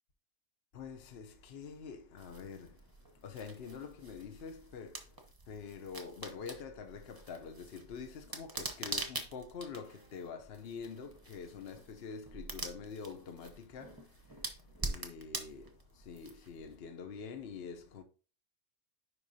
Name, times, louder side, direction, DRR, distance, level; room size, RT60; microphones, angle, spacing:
voice 1, 0.7-18.0, left 5 dB, 50° left, 1.0 m, -46 dB
sound 1, 2.2-16.7, right 2 dB, 20° right, 0.8 m, -45 dB
9.9 x 4.9 x 2.8 m
omnidirectional pair, 1.4 m